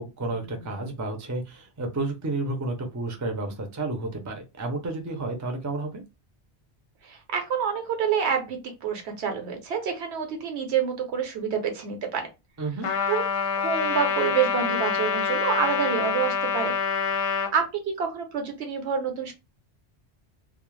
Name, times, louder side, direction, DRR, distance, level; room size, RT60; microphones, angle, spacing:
voice 1, 0.0-6.0 12.6-12.9, right 2 dB, 25° right, 3 dB, 0.4 m, -31 dB
voice 2, 7.0-12.3 13.1-13.2 13.6-16.7 17.5-19.3, right 7 dB, 75° right, 4 dB, 1.0 m, -27 dB
Trumpet, 12.8-17.5, left 6 dB, 65° left, 0.8 m, -26 dB
2.3 x 2.0 x 3.1 m, 0.25 s
omnidirectional pair, 1.1 m